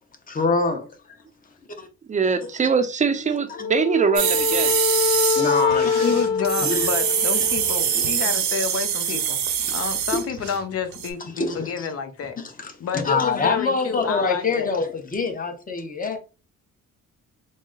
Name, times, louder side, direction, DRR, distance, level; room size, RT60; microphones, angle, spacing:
voice 1, 0.3-0.9 1.8-1.9 3.1-3.2 3.5-3.6 5.3-6.2 6.6-6.9 7.9-8.4 10.1-10.2 11.4-11.9 12.4-12.7 13.0-16.2, left 4 dB, 30° left, 0.9 m, -25 dB
voice 2, 2.1-4.8, right 5 dB, 25° right, 0.5 m, -22 dB
Wind instrument woodwind instrument, 3.5-8.0, left 5 dB, 80° left, 0.6 m, -25 dB
sound 1, 4.2-10.6 10.9-11.1, right 8 dB, 65° right, 0.8 m, -24 dB
voice 3, 6.0-9.4 9.7-12.4 12.8-14.7, left 6 dB, 50° left, 0.8 m, -29 dB
3.9 x 2.0 x 3.8 m
cardioid pair, 90°, 30 cm